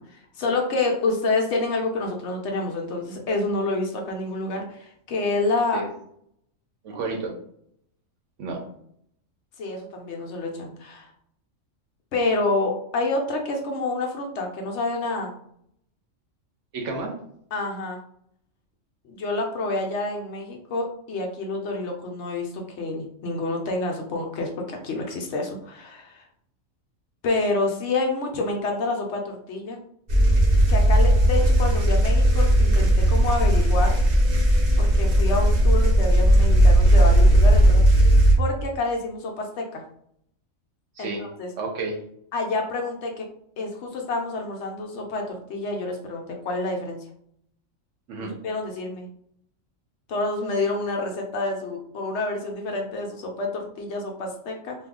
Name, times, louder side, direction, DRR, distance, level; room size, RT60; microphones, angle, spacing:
voice 1, 0.4-5.8 9.6-11.1 12.1-15.3 17.5-18.0 19.0-26.2 27.2-29.8 30.7-34.0 34.8-39.8 41.0-41.5 42.3-43.3 43.6-47.0 48.2-49.1 50.1-54.8, left 2 dB, 65° left, 2 dB, 0.9 m, -28 dB
voice 2, 6.8-7.3 8.4-8.6 16.7-17.2 31.3-31.4 41.0-41.3 41.6-42.0 48.1-48.3, right 3 dB, 70° right, 1 dB, 1.0 m, -31 dB
sound 1, 30.1-38.3, right 1 dB, 40° right, 0.7 m, -17 dB
2.7 x 2.3 x 3.6 m, 0.69 s
omnidirectional pair, 1.4 m